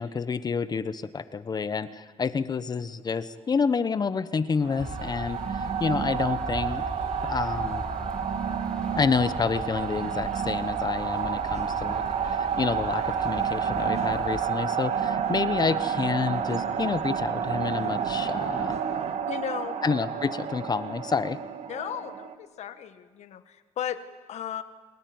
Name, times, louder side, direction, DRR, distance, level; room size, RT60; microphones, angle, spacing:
voice 1, 0.0-6.8 7.2-7.8 8.9-18.7 19.8-21.4, left 5 dB, 35° left, 13 dB, 1.0 m, -29 dB
sound 1, 4.6-22.3, right 7 dB, 65° right, 1.6 m, -30 dB
sound 2, 4.8-14.5, left 1 dB, 5° left, 5.0 m, -40 dB
voice 2, 19.3-19.8 21.7-24.0 24.3-24.6, left 9 dB, 70° left, 10 dB, 1.5 m, -35 dB
28.5 x 15.0 x 9.5 m, 1.4 s
cardioid pair, 105°, 12 cm